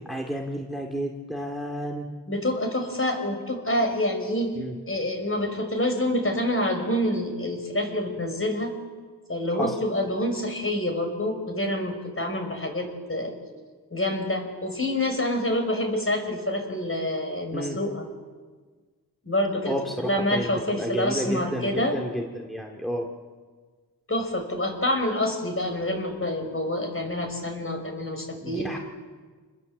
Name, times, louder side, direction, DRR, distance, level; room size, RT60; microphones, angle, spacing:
voice 1, 0.0-2.1 4.5-4.7 9.5-9.8 17.5-17.8 19.7-23.1 28.4-28.8, equal, ahead, 1 dB, 2.3 m, -31 dB
voice 2, 2.3-4.5 4.9-8.7 9.3-13.4 13.9-18.1 19.3-22.0 24.1-28.7, left 1 dB, 35° left, 3 dB, 5.3 m, -27 dB
28.0 x 20.0 x 8.0 m, 1.5 s
wide cardioid pair, 65°, 38 cm